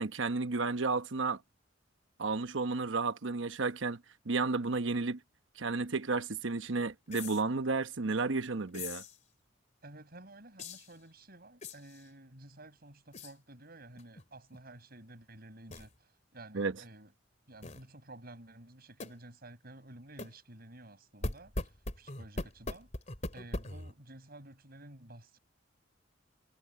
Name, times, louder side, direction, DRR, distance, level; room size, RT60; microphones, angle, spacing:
voice 1, 0.0-1.4 2.2-4.0 4.3-5.2 5.6-9.0 16.5-16.7, right 3 dB, 85° right, 1.0 m, -32 dB
sound 1, 7.1-7.4 8.7-9.2 10.6-10.9 11.6-12.0 13.1-13.3 14.0-14.2 14.5-14.6 15.7-15.9 17.6-17.8 19.0-19.2 20.2-20.4 21.2-23.9, left 2 dB, 40° left, 2.9 m, -40 dB
voice 2, 9.8-17.1 17.5-22.9 23.3-25.4, right 1 dB, 55° right, 7.2 m, -52 dB
head